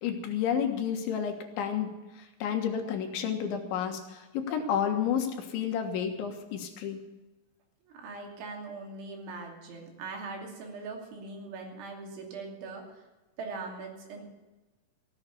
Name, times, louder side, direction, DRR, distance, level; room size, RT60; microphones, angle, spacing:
voice 1, 0.0-1.9 2.4-7.0, left 8 dB, 75° left, 4 dB, 3.7 m, -30 dB
voice 2, 7.9-13.0 13.4-14.3, right 3 dB, 70° right, 1 dB, 5.0 m, -41 dB
16.5 x 9.1 x 8.4 m, 1.1 s
omnidirectional pair, 5.6 m